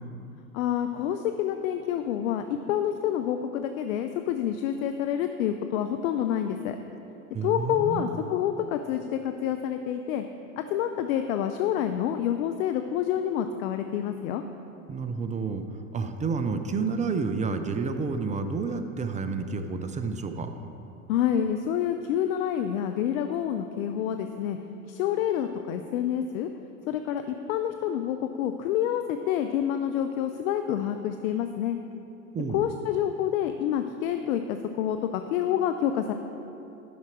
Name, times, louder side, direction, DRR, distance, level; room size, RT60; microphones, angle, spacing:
voice 1, 0.5-6.8 7.4-10.2 10.6-14.4 21.1-24.6 24.9-26.5 26.9-31.8 32.5-36.1, left 10 dB, 65° left, 7 dB, 0.6 m, -28 dB
voice 2, 7.3-8.1 14.9-15.6 15.9-20.5 32.3-32.7, right 4 dB, 15° right, 8 dB, 0.5 m, -30 dB
11.0 x 5.9 x 4.5 m, 2.9 s
hypercardioid pair, 80°, 43 cm